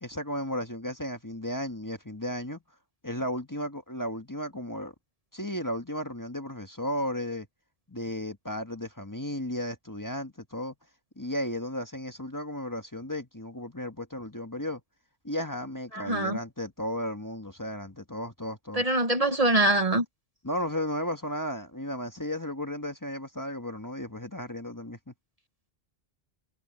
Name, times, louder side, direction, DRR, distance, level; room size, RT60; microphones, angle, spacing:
voice 1, 0.0-2.6 3.0-4.9 5.3-7.5 7.9-10.7 11.2-14.8 15.2-18.8 20.4-25.1, equal, 20° left, 1.5 m, -34 dB
voice 2, 15.9-16.4 18.7-20.0, right 1 dB, 35° right, 1.2 m, -24 dB
omnidirectional pair, 1.1 m